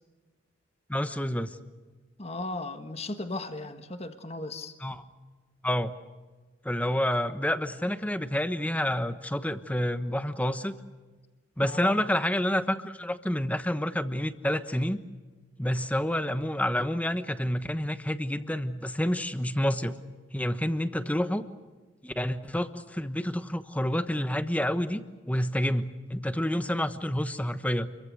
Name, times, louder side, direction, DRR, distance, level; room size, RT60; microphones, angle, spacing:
voice 1, 0.9-1.6 4.8-5.0 5.6-5.9 6.6-10.8 11.6-15.0 15.6-20.0 20.3-21.4 22.0-27.9, left 1 dB, 10° left, 10 dB, 1.2 m, -28 dB
voice 2, 2.2-4.7 11.6-11.9 24.9-25.0, left 2 dB, 35° left, 8 dB, 1.6 m, -36 dB
29.0 x 23.5 x 6.5 m, 1.3 s
head